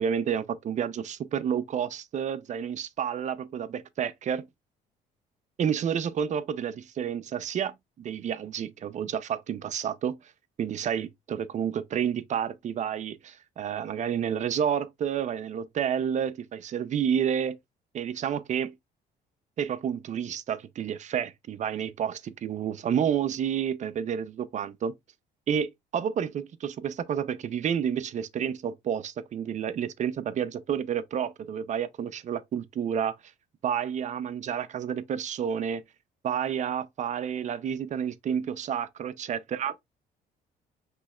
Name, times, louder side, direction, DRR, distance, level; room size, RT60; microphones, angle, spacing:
voice 1, 0.0-4.5 5.6-10.2 10.6-17.6 17.9-18.7 19.6-24.9 25.5-33.1 33.6-35.8 36.2-39.8, right 8 dB, 45° right, 0.6 m, -30 dB
6.1 x 3.2 x 2.4 m
cardioid pair, 110°, 17 cm